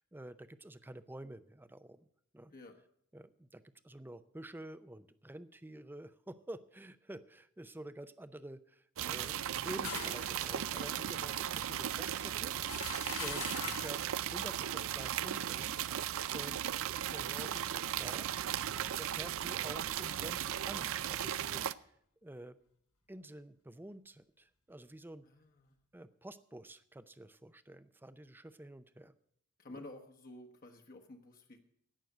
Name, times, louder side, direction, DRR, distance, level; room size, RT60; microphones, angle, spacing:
voice 1, 0.0-2.1 2.3-2.5 3.1-16.6 17.1-21.9 22.2-22.6 23.1-25.3 25.9-29.1 29.7-29.9, right 1 dB, 10° right, 13 dB, 0.5 m, -50 dB
sound 1, 9.0-21.7, right 10 dB, 60° right, 0.4 m, -37 dB
sound 2, 9.4-14.1, left 7 dB, 70° left, 1.7 m, -45 dB
voice 2, 16.3-16.7 25.2-25.8 29.6-31.6, left 2 dB, 40° left, 3 dB, 1.2 m, -52 dB
16.5 x 6.4 x 7.8 m, 0.68 s
head